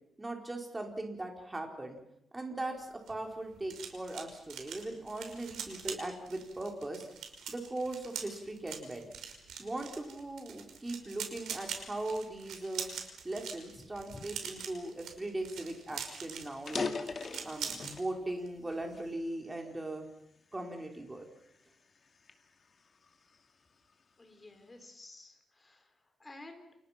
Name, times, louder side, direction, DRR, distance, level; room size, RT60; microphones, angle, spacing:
voice 1, 0.2-2.0 2.3-7.1 7.5-9.0 9.6-12.9 13.2-16.9 17.4-20.1 20.5-21.2, right 2 dB, 15° right, 2 dB, 4.5 m, -39 dB
sound 1, 2.8-18.0 18.3-18.6 18.8-19.1, right 7 dB, 80° right, 5.8 m, -44 dB
sound 2, 15.5-15.6 15.9-16.0 16.5-18.1 18.7-19.9 20.5-20.8 21.4-23.5, left 4 dB, 35° left, 2.2 m, -40 dB
voice 2, 24.2-26.7, left 2 dB, 15° left, 5 dB, 4.5 m, -52 dB
29.5 x 29.5 x 6.0 m, 0.82 s
cardioid pair, 155°, 0 cm